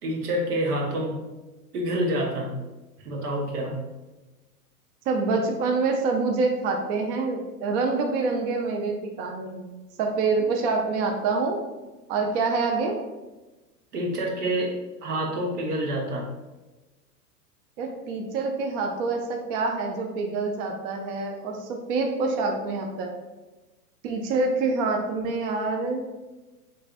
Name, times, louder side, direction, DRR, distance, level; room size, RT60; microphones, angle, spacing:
voice 1, 0.0-1.2 1.7-2.5 3.0-3.7 13.9-14.8 15.0-16.3, right 1 dB, 75° right, 0 dB, 1.0 m, -27 dB
voice 2, 5.1-9.7 10.0-11.6 12.1-13.0 17.8-23.1 24.0-26.0, right 3 dB, 40° right, 2 dB, 0.5 m, -26 dB
3.2 x 3.2 x 2.5 m, 1.1 s
hypercardioid pair, 105°, 46 cm